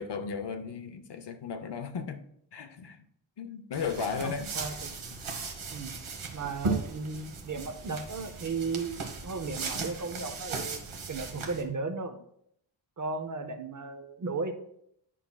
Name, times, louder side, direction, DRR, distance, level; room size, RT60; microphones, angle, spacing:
voice 1, 0.0-2.2 2.5-3.0 3.4-4.5, left 5 dB, 60° left, 0.6 m, -35 dB
sound 1, 3.7-11.6, right 4 dB, 85° right, 1.2 m, -37 dB
voice 2, 4.2-5.0 5.7-5.9 6.3-10.8 11.1-12.2 13.0-14.5, right 4 dB, 40° right, 0.6 m, -35 dB
9.8 x 5.8 x 2.2 m
wide cardioid pair, 145°, 48 cm